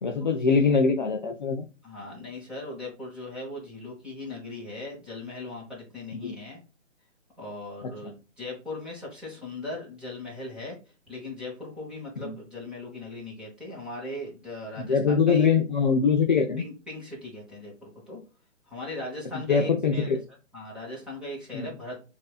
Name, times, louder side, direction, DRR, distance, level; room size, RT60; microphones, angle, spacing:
voice 1, 0.0-1.6 6.1-6.3 8.0-8.1 12.2-12.3 14.8-16.6 19.5-20.2 21.5-21.7, left 5 dB, 40° left, 2 dB, 0.5 m, -23 dB
voice 2, 1.8-6.6 7.4-10.8 11.1-15.5 16.6-18.2 18.7-20.2 20.5-22.1, left 2 dB, ahead, -6 dB, 1.2 m, -39 dB
6.5 x 2.7 x 2.4 m, 0.31 s
hypercardioid pair, 150°, 38 cm